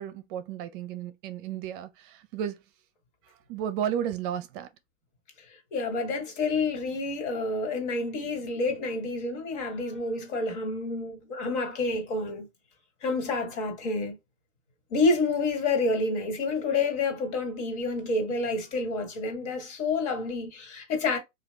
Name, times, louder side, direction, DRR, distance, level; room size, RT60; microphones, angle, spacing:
voice 1, 0.0-2.6 3.5-4.7, right 9 dB, 45° right, 0.5 m, -33 dB
voice 2, 5.7-12.5 13.0-14.2 14.9-21.2, left 3 dB, 60° left, 1.5 m, -28 dB
2.9 x 2.4 x 3.3 m
hypercardioid pair, 130°, 38 cm